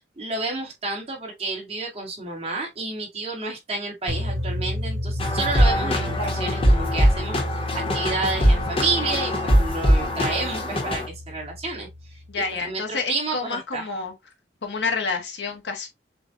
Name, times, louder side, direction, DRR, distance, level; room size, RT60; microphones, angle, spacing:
voice 1, 0.2-12.2 12.6-13.9, right 3 dB, 35° right, 2.2 m, -30 dB
sound 1, 4.1-12.2, left 1 dB, 70° right, 1.9 m, -32 dB
sound 2, 5.2-11.1, equal, 35° left, 1.3 m, -22 dB
voice 2, 12.3-14.1 14.6-15.9, left 4 dB, 85° left, 1.4 m, -28 dB
6.8 x 2.7 x 2.6 m
head